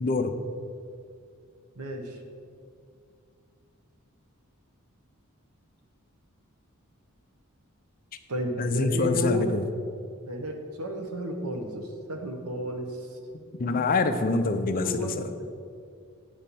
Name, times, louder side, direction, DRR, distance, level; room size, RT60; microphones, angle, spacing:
voice 1, 0.0-0.3 8.6-9.6 13.6-15.1, left 3 dB, 40° left, 8 dB, 0.5 m, -25 dB
voice 2, 1.7-2.2 8.3-9.5 10.3-13.2 14.7-15.4, equal, 85° right, 4 dB, 1.1 m, -33 dB
9.1 x 4.4 x 6.9 m, 2.3 s
head